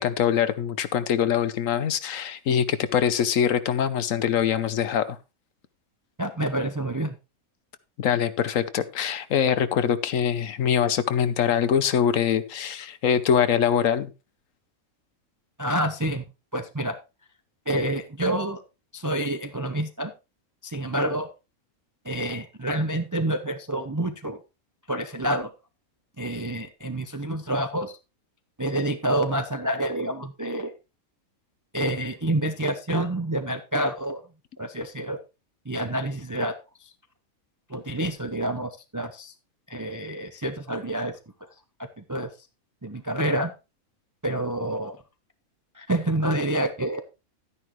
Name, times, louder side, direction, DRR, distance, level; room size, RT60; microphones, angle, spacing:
voice 1, 0.0-5.2 8.0-14.1, left 8 dB, 65° left, 14 dB, 1.1 m, -23 dB
voice 2, 6.2-7.1 15.6-16.2 16.5-17.0 17.7-18.6 18.9-20.1 20.6-21.3 22.0-24.4 24.9-25.5 26.2-27.9 28.6-30.7 31.7-34.2 34.6-35.2 35.7-36.5 36.8-36.9 37.7-39.3 39.7-41.1 42.1-42.3 42.8-43.5 44.2-45.0 45.7-47.0, right 1 dB, 25° right, 8 dB, 0.4 m, -28 dB
11.5 x 9.9 x 3.1 m, 0.28 s
omnidirectional pair, 1.5 m